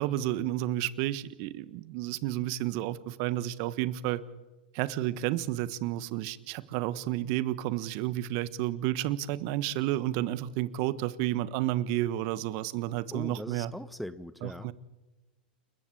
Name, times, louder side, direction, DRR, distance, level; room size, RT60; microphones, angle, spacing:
voice 1, 0.0-4.2 4.7-13.7 14.4-14.7, right 14 dB, 50° right, 17 dB, 1.2 m, -31 dB
voice 2, 13.1-14.7, equal, ahead, 15 dB, 0.9 m, -40 dB
29.0 x 14.5 x 8.4 m, 1.1 s
hypercardioid pair, 105°, 5 cm